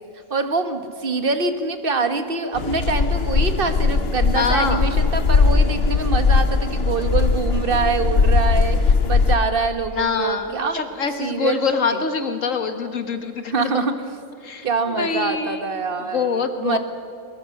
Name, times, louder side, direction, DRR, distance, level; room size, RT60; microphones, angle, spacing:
voice 1, 0.3-10.8 11.2-11.7 11.9-12.0 13.5-13.9 14.6-16.8, right 4 dB, 45° right, 8 dB, 1.6 m, -24 dB
sound 1, 2.5-9.3, left 4 dB, 50° left, 1.2 m, -19 dB
voice 2, 4.3-4.9 9.9-13.9 14.4-15.7 16.1-16.8, left 5 dB, 75° left, 7 dB, 1.9 m, -25 dB
22.5 x 22.5 x 6.6 m, 2.6 s
omnidirectional pair, 1.4 m